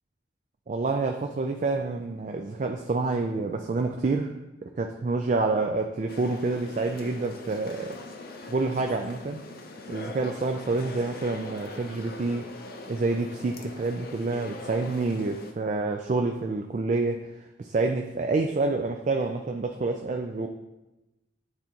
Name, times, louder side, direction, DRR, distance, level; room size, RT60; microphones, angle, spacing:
voice 1, 0.7-4.3 4.6-8.0 8.4-9.4 9.9-12.5 12.9-17.3 17.6-20.5, right 3 dB, 40° right, 4 dB, 0.3 m, -28 dB
sound 1, 6.1-15.5, left 2 dB, 55° left, 0.6 m, -42 dB
9.5 x 3.9 x 2.9 m, 1.0 s
head